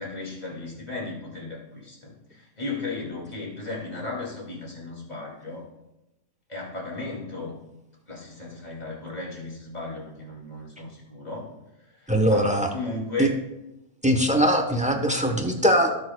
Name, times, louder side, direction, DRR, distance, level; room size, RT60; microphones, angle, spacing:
voice 1, 0.0-5.7 6.5-7.6 8.1-11.5 11.8-13.3, left 3 dB, 30° left, -3 dB, 2.6 m, -35 dB
voice 2, 12.1-12.7 13.2-13.3 14.0-15.9, equal, 5° right, 4 dB, 0.7 m, -21 dB
17.0 x 6.5 x 2.3 m, 0.92 s
omnidirectional pair, 1.5 m